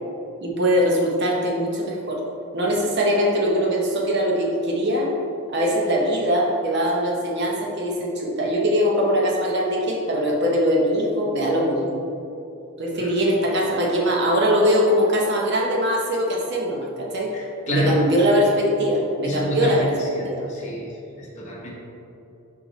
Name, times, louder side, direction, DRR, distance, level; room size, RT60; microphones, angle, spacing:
voice 1, 0.4-2.2 2.5-5.1 5.5-11.9 12.8-17.3 17.7-20.0 20.2-20.4, equal, 55° right, -2 dB, 0.9 m, -21 dB
voice 2, 17.3-18.0 19.2-21.7, equal, 35° left, -5 dB, 1.2 m, -29 dB
5.7 x 5.0 x 3.9 m, 2.8 s
head